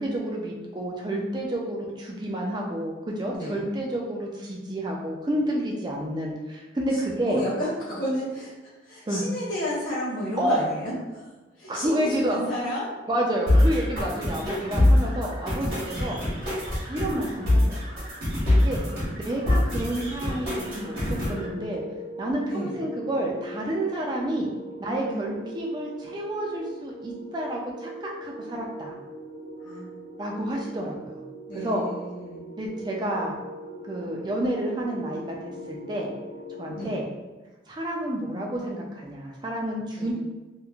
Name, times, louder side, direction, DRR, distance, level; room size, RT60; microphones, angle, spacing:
voice 1, 0.0-7.4 9.1-9.2 10.4-10.6 11.7-12.4 13.1-16.2 16.9-17.8 18.5-18.8 19.1-21.8 22.2-24.5 24.8-28.9 30.2-31.2 31.5-31.8 32.6-33.4 33.9-35.3 35.7-36.1 36.6-37.1 37.7-40.1, right 1 dB, 20° right, -2 dB, 0.3 m, -29 dB
voice 2, 3.3-3.6 6.9-8.5 8.8-12.9 22.5-22.8 24.8-25.3 29.6-29.8 31.5-32.4 36.8-37.0 40.0-40.1, equal, 45° left, -8 dB, 0.7 m, -32 dB
sound 1, 13.5-21.5, left 1 dB, 55° right, 1.1 m, -24 dB
sound 2, 20.1-37.0, equal, 85° left, 0.6 m, -41 dB
2.9 x 2.1 x 2.3 m, 1.2 s
head